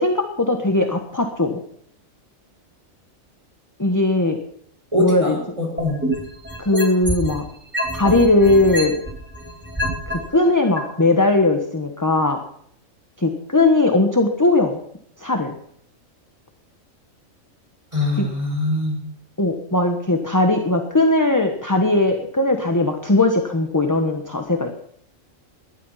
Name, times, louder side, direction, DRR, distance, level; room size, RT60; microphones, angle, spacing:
voice 1, 0.0-1.6 3.8-4.4 5.0-5.4 6.6-7.4 7.9-9.0 10.1-12.4 13.2-14.8 15.2-15.5 18.2-18.3 19.4-24.7, left 2 dB, 15° left, 5 dB, 1.2 m, -19 dB
voice 2, 4.9-6.0 17.9-19.0, left 2 dB, 25° right, -1 dB, 6.1 m, -23 dB
sound 1, 5.8-7.4 7.7-10.1 10.8-10.9, equal, 10° right, 4.6 m, -25 dB
19.0 x 12.0 x 5.8 m, 0.66 s
omnidirectional pair, 1.4 m